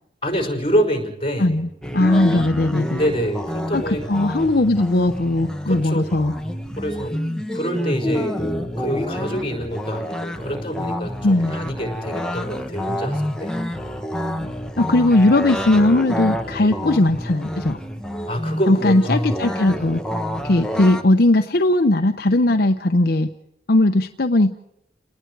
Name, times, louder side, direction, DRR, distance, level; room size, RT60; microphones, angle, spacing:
voice 1, 0.2-1.6 3.0-4.0 5.7-6.0 6.8-7.1 7.5-13.8 16.6-16.8 18.3-19.3, equal, 30° left, 4 dB, 5.3 m, -26 dB
voice 2, 1.4-3.0 3.7-6.3 11.2-11.5 14.4-17.8 18.7-20.0 20.4-23.3 23.7-24.6, left 2 dB, 60° left, 6 dB, 0.8 m, -18 dB
sound 1, 1.8-21.0, equal, 5° left, 1.4 m, -28 dB
29.5 x 19.5 x 4.8 m, 0.83 s
head